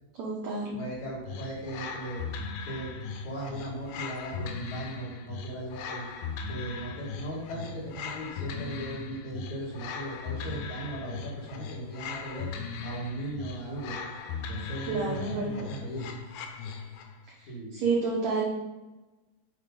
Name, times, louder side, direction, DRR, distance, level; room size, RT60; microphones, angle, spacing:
voice 1, 0.2-0.8 14.9-15.7 17.7-18.5, right 4 dB, 75° right, -4 dB, 1.6 m, -29 dB
voice 2, 0.7-2.2 2.6-2.9 3.2-6.1 6.5-12.5 12.8-14.0 14.5-16.1 17.5-17.7, right 1 dB, 55° left, -5 dB, 2.5 m, -38 dB
sound 1, 1.2-17.2, left 5 dB, 90° left, 1.8 m, -38 dB
7.1 x 3.7 x 5.2 m, 1.1 s
omnidirectional pair, 4.5 m